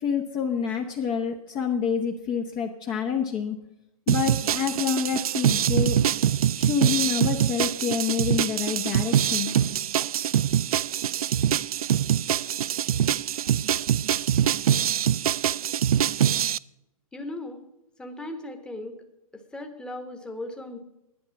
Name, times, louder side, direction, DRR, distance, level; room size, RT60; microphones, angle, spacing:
voice 1, 0.0-3.6 4.1-6.0 6.6-9.5, left 7 dB, 25° left, 3 dB, 0.9 m, -27 dB
sound 1, 4.1-16.6, right 10 dB, 80° right, 0.4 m, -24 dB
voice 2, 17.1-17.6 18.0-19.0 19.3-20.8, left 1 dB, 5° left, 5 dB, 1.2 m, -37 dB
11.0 x 9.6 x 5.8 m, 0.90 s
hypercardioid pair, 140°, 18 cm